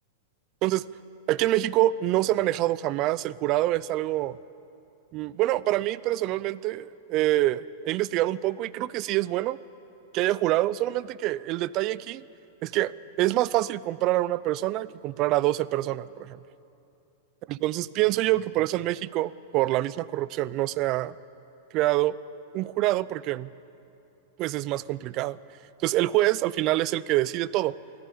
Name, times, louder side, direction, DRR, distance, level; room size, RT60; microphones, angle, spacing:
voice 1, 1.3-4.4 5.1-9.6 10.1-12.2 12.6-12.9 13.2-16.4 17.5-21.1 21.7-22.1 22.5-23.5 24.4-25.4 25.8-27.7, right 16 dB, 45° right, 19 dB, 0.5 m, -26 dB
23.0 x 14.5 x 8.6 m, 2.8 s
hypercardioid pair, 120°, 0 cm